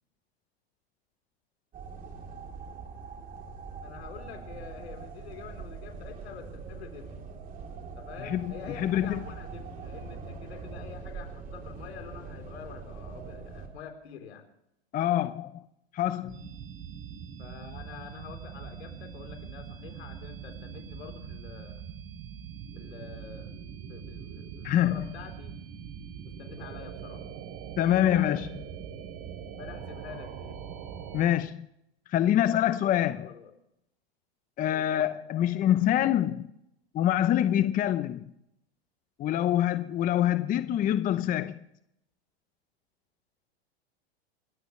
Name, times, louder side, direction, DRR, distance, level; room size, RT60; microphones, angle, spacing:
sound 1, 1.7-13.7, right 5 dB, 25° right, 3.5 m, -42 dB
voice 1, 3.8-7.1 8.0-14.4 17.4-21.8 22.8-23.5 23.9-25.6 26.2-27.2 27.9-28.4 29.0-29.1 29.6-30.6 32.8-33.5 34.7-34.8, left 7 dB, 75° left, 3.9 m, -46 dB
voice 2, 8.8-9.2 14.9-15.6 15.9-16.4 24.6-25.1 27.8-28.5 31.1-31.7 32.1-33.3 34.6-36.5 36.9-38.3 39.2-41.6, left 11 dB, 25° left, 0.8 m, -25 dB
sound 2, 16.3-31.3, right 8 dB, 45° right, 3.4 m, -42 dB
29.0 x 13.5 x 3.3 m
hypercardioid pair, 115°, 32 cm